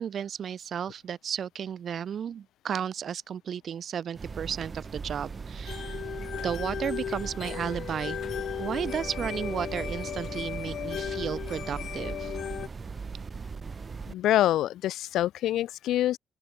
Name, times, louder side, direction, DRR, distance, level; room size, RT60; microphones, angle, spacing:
voice 1, 0.0-6.0 6.4-8.2 8.6-12.3, right 8 dB, 55° right, 2.4 m, -33 dB
sound 1, 4.1-14.1, right 5 dB, 35° right, 0.9 m, -39 dB
sound 2, 5.7-12.7, left 10 dB, 65° left, 1.8 m, -36 dB
voice 2, 14.1-16.2, left 13 dB, 85° left, 0.5 m, -25 dB
open air
cardioid pair, 90°, 0 cm